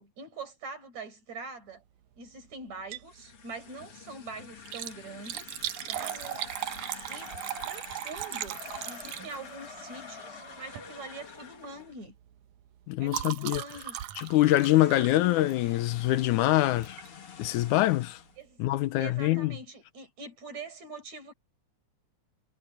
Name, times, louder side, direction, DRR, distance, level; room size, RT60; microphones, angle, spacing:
voice 1, 0.0-1.8 2.1-5.6 5.9-6.8 7.1-12.1 13.0-14.0 14.9-15.1 18.4-18.7 19.0-21.3, right 3 dB, 60° right, 6.5 m, -44 dB
Liquid, 2.7-3.2 3.5-3.6 4.5-9.7 10.6-10.9 11.3-11.5 11.8-15.9 16.8-17.1 17.6-17.7 17.9-18.0, right 13 dB, 80° right, 2.3 m, -38 dB
sound 1, 3.0-12.0 14.1-18.4, left 7 dB, 50° left, 2.8 m, -49 dB
sound 2, 5.9-11.9 13.0-13.1, left 1 dB, 20° left, 0.8 m, -47 dB
voice 2, 12.9-13.6 14.2-17.0 17.4-18.2 18.6-19.6, left 15 dB, 80° left, 2.2 m, -24 dB
omnidirectional pair, 3.5 m